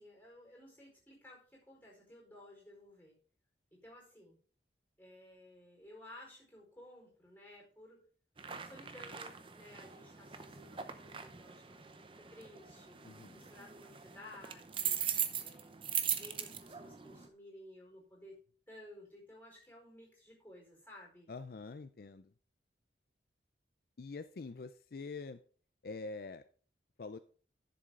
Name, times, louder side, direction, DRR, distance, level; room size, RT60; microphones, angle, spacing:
voice 1, 0.0-3.1 3.7-4.4 5.0-8.0 8.5-13.0 13.3-15.0 15.4-18.4 18.7-21.3, left 1 dB, 10° left, -3 dB, 4.6 m, -56 dB
sound 1, 8.4-17.3, right 8 dB, 30° right, 0.7 m, -40 dB
voice 2, 13.0-13.4 21.3-22.3 24.0-25.4 25.8-26.4 27.0-27.2, left 3 dB, 55° left, 11 dB, 0.4 m, -45 dB
11.0 x 6.9 x 3.8 m, 0.43 s
head